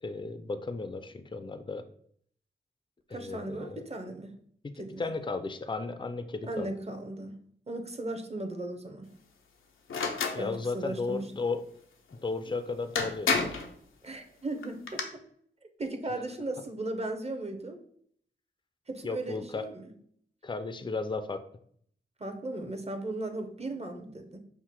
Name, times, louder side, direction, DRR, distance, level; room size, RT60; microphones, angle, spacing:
voice 1, 0.0-1.8 3.1-3.8 4.6-6.7 10.3-11.6 12.2-13.4 19.0-19.7 20.4-21.4, left 3 dB, 25° left, 9 dB, 0.5 m, -34 dB
voice 2, 3.1-4.3 4.8-5.1 6.4-7.4 7.7-9.1 10.4-11.3 14.0-15.0 15.8-17.8 18.9-19.9 22.2-24.4, right 2 dB, 30° right, 6 dB, 0.9 m, -37 dB
sound 1, 9.9-10.4 12.5-12.6 13.0-13.7 14.6-15.0, left 4 dB, 85° left, 0.6 m, -29 dB
5.7 x 2.1 x 4.5 m, 0.63 s
cardioid pair, 40°, 20 cm